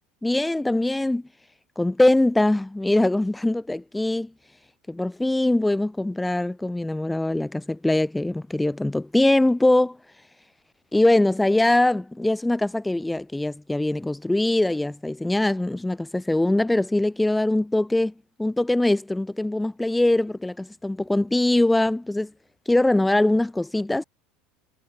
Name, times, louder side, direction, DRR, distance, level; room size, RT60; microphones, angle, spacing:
voice 1, 0.2-1.3 1.8-4.3 4.9-10.0 10.9-18.1 18.4-22.3 22.7-24.0, left 1 dB, 10° left, 0.3 m, -22 dB
hypercardioid pair, 85°, 0 cm